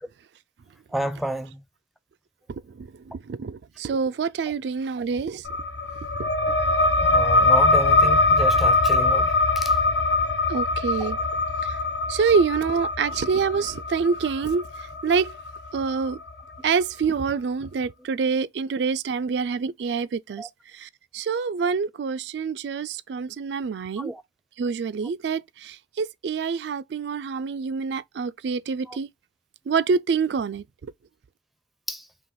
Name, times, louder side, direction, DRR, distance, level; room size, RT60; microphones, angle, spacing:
voice 1, 0.9-1.6 7.0-9.8 11.0-11.1 20.4-20.5 24.0-24.2 28.9-29.0 31.9-32.1, right 1 dB, ahead, 0.5 m, -30 dB
voice 2, 3.3-5.4 6.2-6.3 10.5-11.2 11.6-11.7 12.1-14.7 15.0-15.3 15.7-16.2 16.6-20.5 20.7-24.1 24.6-29.1 29.7-30.6, right 5 dB, 70° right, 0.4 m, -26 dB
sound 1, 5.4-16.6, left 3 dB, 70° left, 0.8 m, -22 dB
3.8 x 2.9 x 4.1 m
head